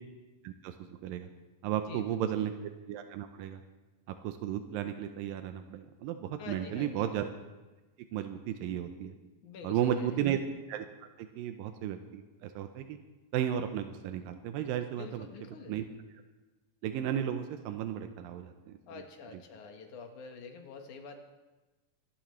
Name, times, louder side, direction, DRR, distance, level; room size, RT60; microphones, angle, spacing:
voice 1, 0.4-1.3 1.6-3.6 4.1-7.3 8.1-9.1 9.6-10.4 10.7-10.9 11.2-13.0 13.3-15.3 15.7-15.9 16.8-18.8, right 10 dB, 90° right, 7 dB, 2.4 m, -34 dB
voice 2, 1.7-2.5 6.4-7.1 9.4-10.2 15.0-15.8 18.9-21.2, left 4 dB, 65° left, 4 dB, 2.6 m, -47 dB
25.5 x 13.0 x 3.2 m, 1.2 s
omnidirectional pair, 4.0 m